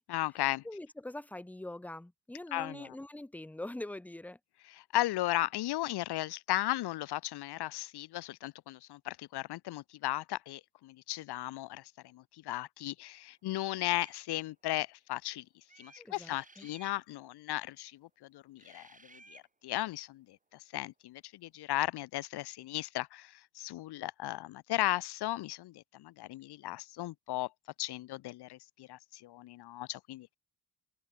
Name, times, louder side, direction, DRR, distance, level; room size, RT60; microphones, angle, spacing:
voice 1, 0.1-0.6 2.5-2.9 4.8-11.8 12.1-15.4 15.8-18.9 19.3-20.4 20.7-27.5 27.8-30.3, left 16 dB, 70° left, 0.6 m, -36 dB
voice 2, 0.6-4.4 16.0-16.7, left 1 dB, 5° left, 0.7 m, -43 dB
sound 1, 13.8-14.2 15.7-17.0 18.6-19.5, right 3 dB, 20° right, 2.2 m, -57 dB
cardioid pair, 75°, 41 cm